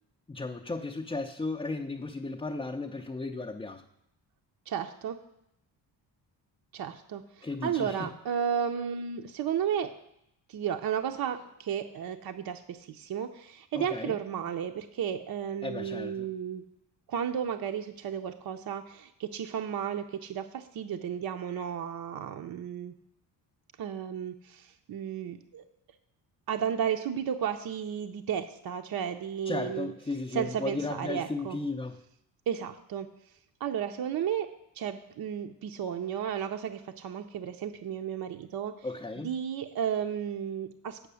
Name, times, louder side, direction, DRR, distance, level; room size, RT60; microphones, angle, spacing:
voice 1, 0.3-3.8 7.4-8.1 13.7-14.2 15.6-16.3 29.5-32.0 38.8-39.4, left 3 dB, 15° left, 1 dB, 0.5 m, -35 dB
voice 2, 4.7-5.2 6.7-9.9 10.5-16.6 17.1-22.9 23.8-25.6 26.5-29.9 30.3-31.6 32.5-33.1 33.6-34.5 34.7-38.9 39.2-41.1, right 8 dB, 55° right, 6 dB, 0.6 m, -33 dB
8.6 x 5.9 x 6.9 m, 0.79 s
cardioid pair, 95°, 42 cm